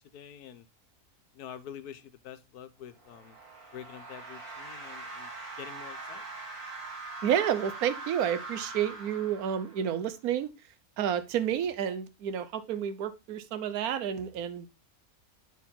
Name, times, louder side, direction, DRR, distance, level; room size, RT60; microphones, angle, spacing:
voice 1, 0.1-0.7 1.3-3.4 3.7-5.3 5.6-6.2, left 9 dB, 85° left, 1.4 m, -46 dB
sound 1, 2.9-10.0, right 3 dB, 60° right, 3.2 m, -42 dB
voice 2, 7.2-10.5 11.0-14.7, right 9 dB, 75° right, 1.3 m, -30 dB
8.8 x 4.8 x 3.6 m
omnidirectional pair, 1.6 m